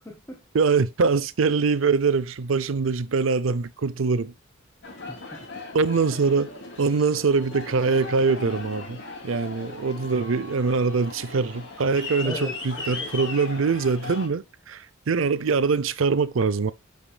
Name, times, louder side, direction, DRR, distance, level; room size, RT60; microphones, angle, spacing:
voice 1, 0.0-0.4 5.1-5.6 12.2-13.3, left 1 dB, 15° left, 1.6 m, -38 dB
voice 2, 0.5-4.3 5.7-6.5 6.8-12.3 12.6-16.7, right 4 dB, 70° right, 0.6 m, -23 dB
Aircraft, 4.8-14.3, left 3 dB, 65° left, 2.7 m, -38 dB
11.0 x 5.2 x 2.3 m
head